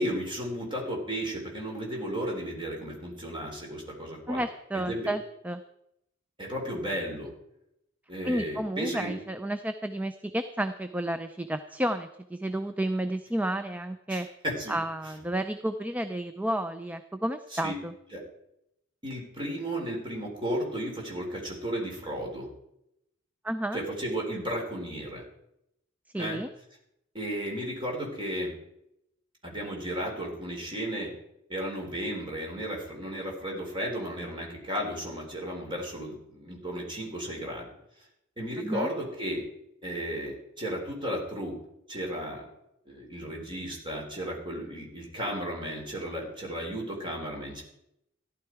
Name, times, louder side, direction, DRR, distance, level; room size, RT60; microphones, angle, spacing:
voice 1, 0.0-4.4 4.7-5.1 6.4-7.3 8.1-9.1 14.1-14.8 17.5-17.8 18.1-18.2 19.0-22.5 23.7-25.2 26.1-26.4 27.1-28.5 29.4-31.1 31.5-37.7 38.4-39.4 39.8-41.6 41.9-42.5 42.9-47.6, equal, 25° right, -1 dB, 4.2 m, -34 dB
voice 2, 4.3-5.6 8.2-14.3 14.7-17.9 23.4-23.8 26.1-26.5 38.6-38.9, right 1 dB, 10° right, 9 dB, 0.5 m, -31 dB
15.0 x 11.5 x 4.7 m, 0.81 s
head